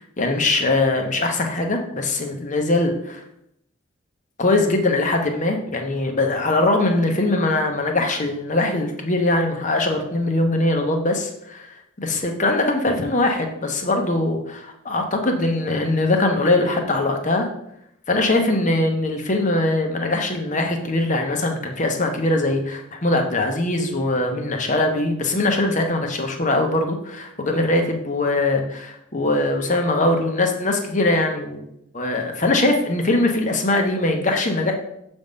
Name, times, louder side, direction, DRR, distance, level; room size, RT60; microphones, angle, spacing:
voice 1, 0.0-3.2 4.4-11.7 12.0-17.5 18.1-31.6 31.9-34.7, left 2 dB, 35° left, 4 dB, 0.9 m, -21 dB
7.0 x 3.6 x 5.3 m, 0.78 s
head